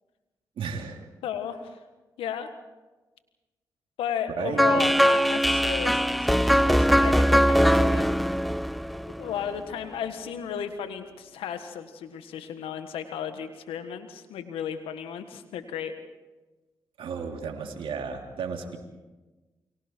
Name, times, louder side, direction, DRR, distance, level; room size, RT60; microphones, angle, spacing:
voice 1, 0.6-1.0 4.3-4.8 17.0-18.8, right 6 dB, 75° right, 2 dB, 3.1 m, -33 dB
voice 2, 1.2-1.8 2.2-2.5 4.0-8.0 9.2-15.9, left 8 dB, 85° left, 9 dB, 1.6 m, -34 dB
sound 1, 4.6-9.6, equal, ahead, 0.7 m, -21 dB
29.5 x 23.0 x 4.6 m, 1.2 s
supercardioid pair, 40°, 9 cm